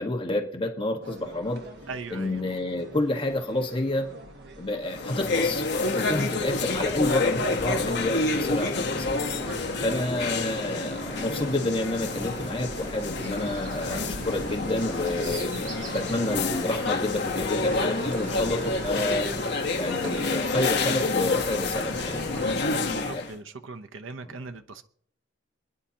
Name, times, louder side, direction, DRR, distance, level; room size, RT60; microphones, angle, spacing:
voice 1, 0.0-1.7 2.1-4.1 4.6-9.2 9.8-15.5 15.9-19.3 19.7-23.2 24.2-24.3, left 1 dB, 25° left, 2 dB, 1.5 m, -29 dB
sound 1, 1.0-15.4, right 1 dB, 60° right, 1.6 m, -44 dB
voice 2, 1.9-2.5 9.7-9.8 15.8-16.1 22.3-24.8, right 3 dB, 80° right, 7 dB, 0.7 m, -40 dB
sound 2, 4.9-23.3, left 3 dB, 60° left, 1.2 m, -29 dB
sound 3, 6.4-22.6, right 1 dB, 40° right, 3.4 m, -39 dB
28.5 x 10.0 x 2.9 m, 0.63 s
head